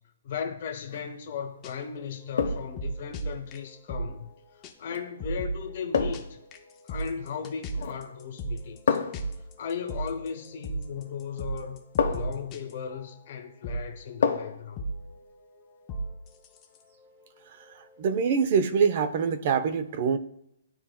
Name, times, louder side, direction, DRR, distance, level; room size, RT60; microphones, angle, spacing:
voice 1, 0.2-6.4 6.8-9.0 9.6-11.8 12.1-14.9, left 7 dB, 40° left, 1.0 m, -37 dB
sound 1, 0.8-1.1 2.4-2.8 4.9-5.1 5.9-6.4 7.7-8.1 8.9-9.3 11.0-11.1 12.0-12.4 14.2-14.7 15.0-15.1, left 6 dB, 60° left, 0.9 m, -28 dB
sound 2, 1.5-4.4 4.6-4.7 5.0-13.4 13.6-18.4, right 2 dB, 15° left, 0.5 m, -37 dB
voice 2, 18.0-20.2, right 6 dB, 35° right, 0.5 m, -24 dB
12.5 x 4.3 x 2.2 m
hypercardioid pair, 175°, 0 cm